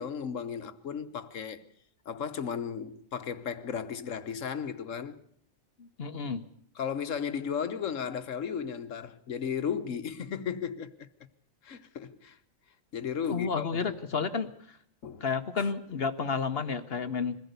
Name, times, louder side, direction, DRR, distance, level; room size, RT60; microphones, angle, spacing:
voice 1, 0.0-1.6 2.0-5.2 6.7-11.1 11.6-12.4 12.9-14.3 15.0-15.2 15.6-15.7, left 7 dB, 70° left, 1.4 m, -35 dB
voice 2, 5.8-6.4 13.3-14.5 15.2-17.4, left 5 dB, 50° left, 1.2 m, -31 dB
22.5 x 15.5 x 8.1 m
omnidirectional pair, 1.4 m